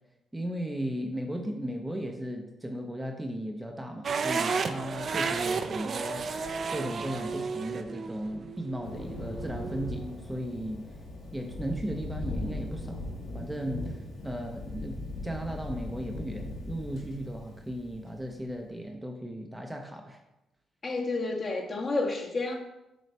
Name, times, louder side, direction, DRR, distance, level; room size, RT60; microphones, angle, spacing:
voice 1, 0.3-6.3 6.7-10.8 11.3-13.1 13.3-14.0 14.2-20.2, right 1 dB, 10° right, 3 dB, 0.7 m, -36 dB
sound 1, 4.0-10.1, right 5 dB, 50° right, 0.5 m, -33 dB
Thunder, 8.8-18.5, left 2 dB, 80° left, 2.4 m, -39 dB
voice 2, 20.8-22.5, left 3 dB, 40° left, -1 dB, 1.5 m, -30 dB
7.6 x 3.1 x 5.3 m, 0.92 s
cardioid pair, 90°, 0 cm